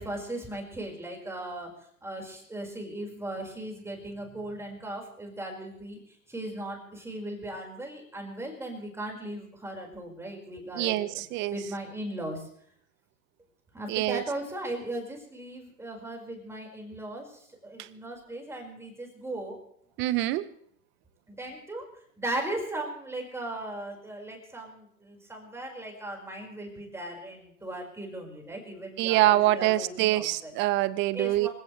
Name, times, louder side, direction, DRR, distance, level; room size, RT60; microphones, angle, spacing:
voice 1, 0.0-1.7 2.0-11.2 11.5-12.5 13.7-19.6 21.3-21.9 22.2-30.5 31.1-31.5, right 1 dB, 5° right, 0 dB, 5.1 m, -37 dB
voice 2, 10.7-11.5 13.9-14.2 17.8-17.9 20.0-20.5 29.0-31.5, right 16 dB, 25° right, 17 dB, 0.7 m, -25 dB
26.0 x 16.5 x 3.3 m, 0.66 s
hypercardioid pair, 120°, 49 cm